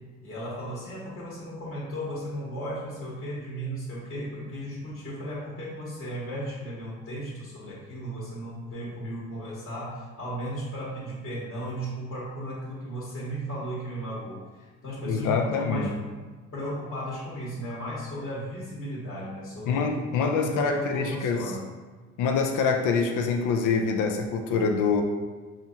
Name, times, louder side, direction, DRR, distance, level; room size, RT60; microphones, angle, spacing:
voice 1, 0.2-16.0 16.5-19.9 20.2-21.7, equal, 40° left, -7 dB, 1.3 m, -35 dB
voice 2, 15.1-15.9 19.7-21.4 22.2-25.0, left 5 dB, 85° left, 3 dB, 0.5 m, -25 dB
5.5 x 2.4 x 2.7 m, 1.4 s
cardioid pair, 90°, 30 cm